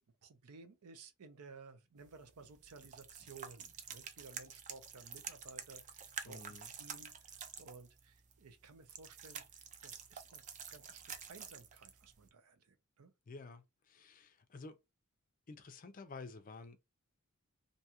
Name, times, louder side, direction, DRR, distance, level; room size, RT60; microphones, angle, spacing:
voice 1, 0.2-13.1, right 4 dB, 90° right, 0.6 m, -57 dB
sound 1, 2.0-12.3, right 7 dB, 35° right, 0.4 m, -49 dB
voice 2, 6.3-6.7 13.3-14.8 15.5-16.8, left 3 dB, 35° left, 0.4 m, -51 dB
2.6 x 2.3 x 2.8 m
head